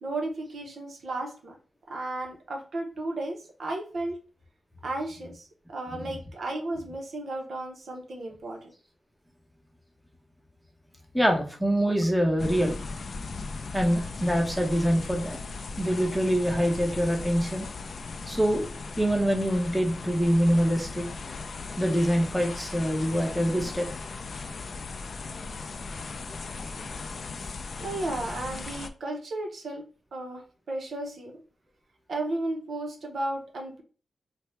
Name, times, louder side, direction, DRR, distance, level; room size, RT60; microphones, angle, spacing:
voice 1, 0.0-1.6 1.9-4.2 4.8-8.7 27.8-29.8 30.1-31.4 32.1-33.8, right 2 dB, 60° right, 2 dB, 0.8 m, -34 dB
voice 2, 11.1-12.8 13.7-15.4 15.8-17.7 18.3-18.7 19.0-21.1 21.8-23.9 25.3-25.4, equal, ahead, 2 dB, 0.8 m, -25 dB
sound 1, 12.4-28.9, left 4 dB, 55° left, 0.3 m, -38 dB
4.3 x 2.2 x 3.1 m, 0.37 s
wide cardioid pair, 100°, 0 cm